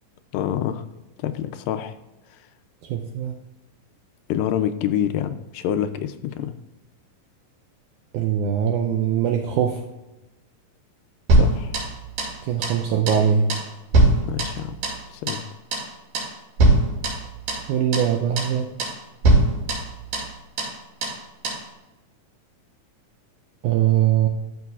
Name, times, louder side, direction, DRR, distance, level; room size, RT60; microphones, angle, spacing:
voice 1, 0.3-0.8 1.2-1.9 4.3-6.6 11.3-11.7 14.3-14.8 15.1-15.5, left 10 dB, 80° left, 10 dB, 2.1 m, -26 dB
voice 2, 2.8-3.3 8.1-9.9 12.4-13.5 17.7-18.9 23.6-24.3, right 9 dB, 85° right, 3 dB, 1.7 m, -22 dB
sound 1, 11.3-12.4 12.6-12.8 13.1-13.2 13.5-15.0 15.3-15.5 15.7-15.9 16.1-16.3 16.6-17.7 17.9-18.1 18.4-18.5 18.8-19.0 19.2-20.3 20.6-20.7 21.0-21.2 21.4-21.6, right 2 dB, 65° right, 3.6 m, -21 dB
13.0 x 6.3 x 2.4 m, 1.0 s
omnidirectional pair, 4.2 m